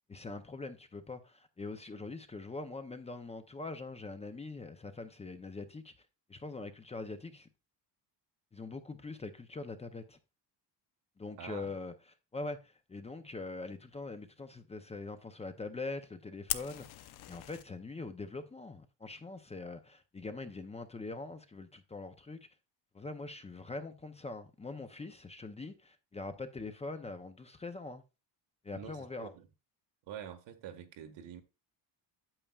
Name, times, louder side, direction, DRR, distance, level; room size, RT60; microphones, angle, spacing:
voice 1, 0.1-7.5 8.5-10.2 11.2-11.9 12.3-22.5 22.9-28.0 28.6-29.3, left 3 dB, 15° left, 0.6 m, -43 dB
voice 2, 11.4-11.7 28.7-29.5 30.1-31.4, right 9 dB, 80° right, 1.5 m, -46 dB
Fire, 16.5-17.6, left 13 dB, 60° left, 0.7 m, -38 dB
8.8 x 8.4 x 2.3 m
cardioid pair, 155°, 43 cm